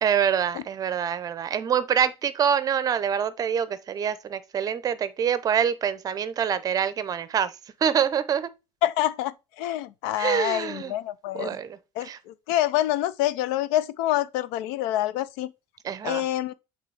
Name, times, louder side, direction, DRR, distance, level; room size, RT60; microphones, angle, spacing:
voice 1, 0.0-7.5 7.8-8.5 10.2-10.9 11.3-12.2 15.8-16.3, right 8 dB, 35° right, 0.7 m, -25 dB
voice 2, 8.8-11.6 12.0-15.5 16.0-16.5, left 13 dB, 85° left, 0.5 m, -27 dB
7.5 x 4.0 x 3.3 m
cardioid pair, 115°, 11 cm